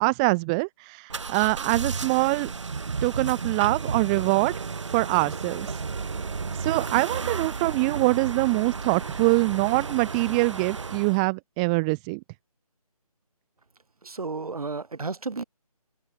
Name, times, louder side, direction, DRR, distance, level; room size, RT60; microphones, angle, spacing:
voice 1, 0.0-2.5 3.0-4.6 4.9-5.7 6.6-12.2, right 29 dB, 10° right, 1.6 m, -24 dB
sound 1, 1.1-11.3, right 5 dB, 50° right, 2.4 m, -33 dB
voice 2, 14.0-15.4, right 4 dB, 65° right, 2.3 m, -32 dB
figure-of-eight pair, 170°, 20 cm